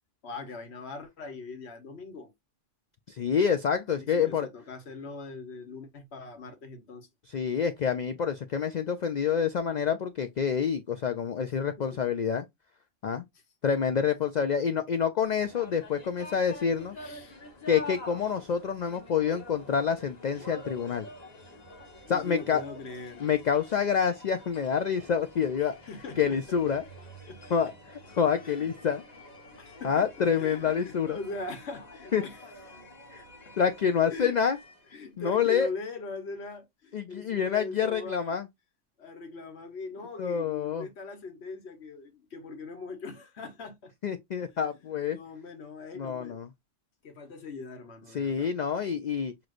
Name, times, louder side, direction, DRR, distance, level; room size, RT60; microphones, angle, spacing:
voice 1, 0.2-2.3 4.0-7.1 11.8-12.0 16.9-17.4 22.1-23.3 25.6-26.4 27.3-27.7 28.4-28.7 29.6-30.1 30.4-32.8 33.5-33.6 34.1-34.3 34.9-38.4 39.0-43.9 44.5-44.6 44.9-46.4 47.0-48.5, left 3 dB, 60° left, 1.3 m, -41 dB
voice 2, 3.1-4.5 7.3-12.4 13.0-13.2 13.6-17.0 17.7-21.1 22.1-22.6 23.2-25.7 26.2-26.8 27.5-27.7 28.2-29.0 29.8-31.2 32.1-32.2 33.1-33.2 33.6-34.6 35.2-35.7 36.9-38.5 40.2-40.9 44.0-45.2 46.0-46.5 48.1-49.3, left 7 dB, 90° left, 0.3 m, -27 dB
sound 1, 15.2-35.0, left 1 dB, 35° left, 1.3 m, -47 dB
6.3 x 3.0 x 2.5 m
omnidirectional pair, 1.3 m